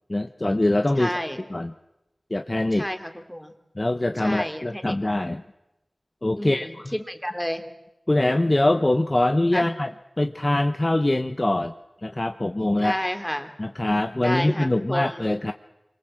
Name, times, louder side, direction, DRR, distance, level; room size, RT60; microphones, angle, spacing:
voice 1, 0.1-1.1 1.5-1.7 2.3-2.8 3.8-5.4 6.2-6.9 8.1-9.9 10.2-11.7 12.0-13.0 13.6-15.5, left 1 dB, 30° left, 7 dB, 1.0 m, -23 dB
voice 2, 1.0-1.4 2.7-3.5 4.2-5.0 6.4-7.6 9.5-9.7 12.7-13.5 14.2-15.2, equal, 5° left, 6 dB, 2.9 m, -30 dB
25.5 x 24.0 x 7.7 m, 0.95 s
wide cardioid pair, 65°, 0 cm